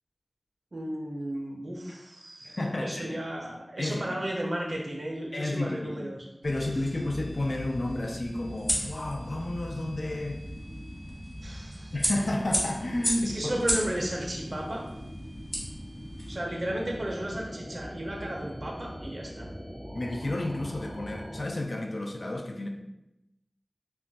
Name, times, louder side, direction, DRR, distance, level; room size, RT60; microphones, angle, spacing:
voice 1, 0.7-6.2 11.4-11.9 13.2-14.8 16.3-19.5, right 1 dB, 60° right, -1 dB, 0.4 m, -34 dB
voice 2, 2.4-3.2 3.8-4.2 5.3-6.1 6.4-10.4 11.9-13.6 19.9-22.7, left 1 dB, 65° left, 2 dB, 0.4 m, -31 dB
sound 1, 6.4-16.3, equal, 20° left, 1.1 m, -36 dB
sound 2, 6.4-21.4, equal, ahead, 0.5 m, -42 dB
2.3 x 2.1 x 3.8 m, 0.90 s
wide cardioid pair, 55°, 0 cm